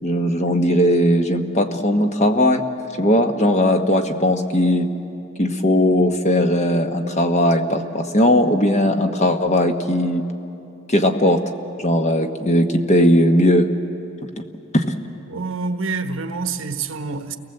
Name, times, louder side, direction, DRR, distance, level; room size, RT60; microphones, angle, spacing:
voice 1, 0.0-2.6 3.0-4.9 5.4-10.2 10.9-11.4 11.8-13.7 14.7-14.9, left 1 dB, 30° left, 1.2 m, -18 dB
voice 2, 15.3-17.4, right 4 dB, 65° right, 1.2 m, -27 dB
29.0 x 19.5 x 7.9 m
head